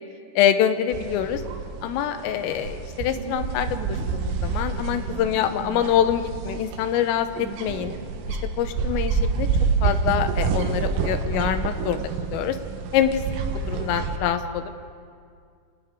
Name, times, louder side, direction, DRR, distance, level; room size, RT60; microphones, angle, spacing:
voice 1, 0.4-1.4 1.8-8.0 8.3-9.5 9.8-12.0 12.3-12.6 12.9-13.2 13.7-14.7, left 10 dB, 90° left, 9 dB, 3.7 m, -25 dB
sound 1, 0.9-14.2, right 5 dB, 75° right, 3.7 m, -28 dB
29.5 x 27.5 x 3.8 m, 2.2 s
omnidirectional pair, 5.7 m